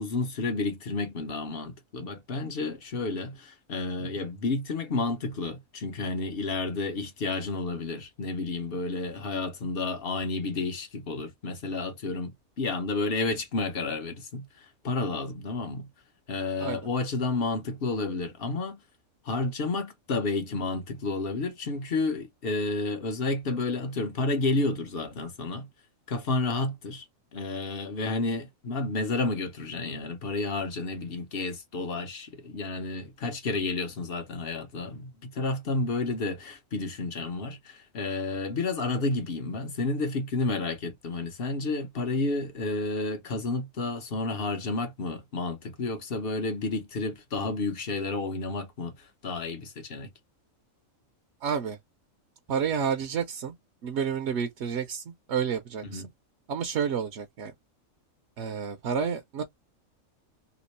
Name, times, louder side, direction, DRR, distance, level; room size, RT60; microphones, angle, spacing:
voice 1, 0.0-15.9 16.3-18.8 19.2-25.7 26.1-27.1 27.3-50.1 55.9-56.1, left 3 dB, 50° left, 1.0 m, -31 dB
voice 2, 51.4-51.8 52.5-53.5 53.8-56.0 56.5-57.5 58.4-59.4, right 7 dB, 60° right, 0.8 m, -30 dB
3.0 x 2.9 x 3.0 m
omnidirectional pair, 1.4 m